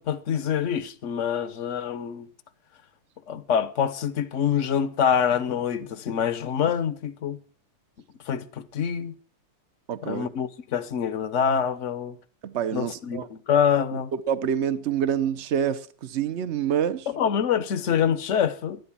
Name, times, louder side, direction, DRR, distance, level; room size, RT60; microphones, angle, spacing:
voice 1, 0.0-2.3 3.3-7.4 8.3-9.1 10.0-12.2 12.7-14.1 17.1-18.8, left 8 dB, 55° left, 0.8 m, -25 dB
voice 2, 9.9-10.3 12.4-13.3 14.1-17.1, right 8 dB, 75° right, 0.6 m, -27 dB
13.5 x 11.5 x 7.3 m
omnidirectional pair, 2.4 m